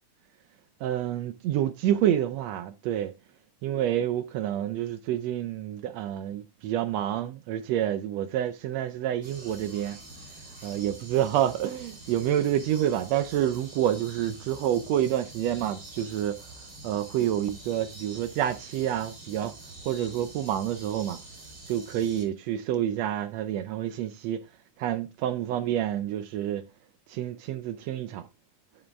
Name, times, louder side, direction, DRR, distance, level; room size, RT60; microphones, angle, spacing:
voice 1, 0.8-3.1 3.6-10.0 10.6-16.4 16.8-19.5 19.8-21.2 21.7-24.4 24.8-26.6 27.1-28.2, right 11 dB, 80° right, 1.5 m, -28 dB
sound 1, 9.2-22.2, right 2 dB, 30° right, 3.7 m, -46 dB
7.9 x 7.8 x 3.3 m
omnidirectional pair, 3.5 m